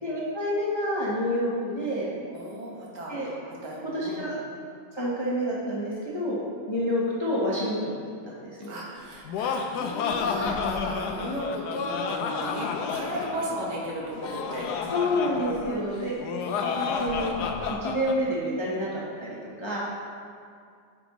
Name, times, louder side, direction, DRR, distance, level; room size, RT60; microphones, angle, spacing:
voice 1, 0.0-2.1 3.1-3.3 3.8-4.4 4.9-6.4 6.7-8.7 10.3-10.6 14.9-16.3 16.7-19.8, equal, 20° left, -6 dB, 0.8 m, -29 dB
voice 2, 2.3-4.3 8.7-14.7 16.4-17.0, equal, 75° right, -4 dB, 1.9 m, -36 dB
Laughter, 9.0-18.2, left 5 dB, 75° left, 1.1 m, -30 dB
8.9 x 6.0 x 3.0 m, 2.2 s
omnidirectional pair, 1.8 m